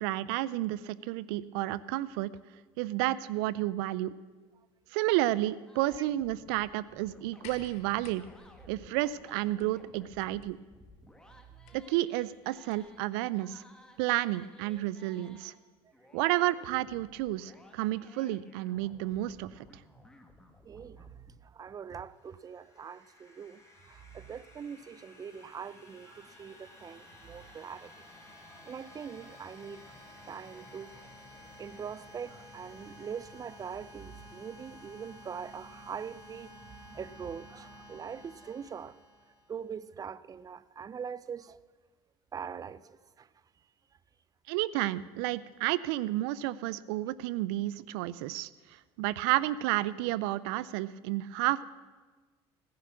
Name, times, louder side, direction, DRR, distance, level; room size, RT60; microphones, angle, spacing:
voice 1, 0.0-2.3 2.8-4.1 4.9-8.2 8.7-10.6 11.7-13.6 14.0-15.5 16.1-19.8 44.5-48.5 49.0-51.7, right 16 dB, 85° right, 0.4 m, -31 dB
sound 1, 5.7-13.0 13.3-15.5 15.9-21.3, left 1 dB, 5° left, 1.9 m, -58 dB
sound 2, 7.4-13.0 14.1-14.2, left 8 dB, 75° left, 1.2 m, -56 dB
voice 2, 20.6-28.1 28.4-29.9 30.2-31.1 31.6-39.0 39.5-41.6 42.3-43.3, right 7 dB, 30° right, 0.5 m, -43 dB
sound 3, 22.1-39.7, left 1 dB, 25° left, 4.2 m, -53 dB
16.5 x 10.5 x 6.2 m
supercardioid pair, 90°, 12 cm